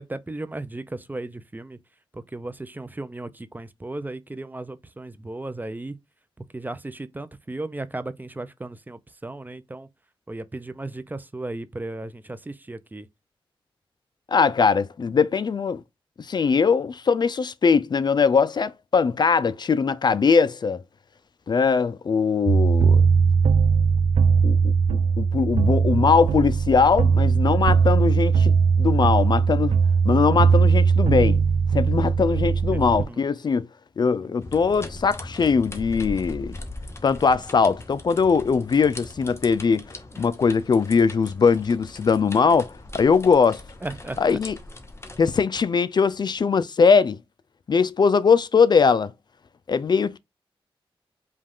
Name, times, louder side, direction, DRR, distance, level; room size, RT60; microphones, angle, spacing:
voice 1, 0.0-1.8 2.1-6.0 6.4-9.9 10.3-13.1 32.7-33.2 34.0-34.1 43.8-44.4, right 2 dB, 20° right, 0.5 m, -35 dB
voice 2, 14.3-15.8 16.3-20.8 21.5-23.0 24.4-29.7 30.0-31.4 31.7-33.7 34.0-36.6 37.0-39.8 40.2-43.6 44.2-44.5 45.2-47.2 47.7-49.1 49.7-50.2, left 5 dB, 50° left, 0.4 m, -21 dB
sound 1, 22.5-33.0, right 5 dB, 80° right, 0.4 m, -19 dB
sound 2, 34.4-45.3, left 2 dB, 25° left, 0.9 m, -40 dB
5.2 x 2.4 x 3.5 m
wide cardioid pair, 95°, 10 cm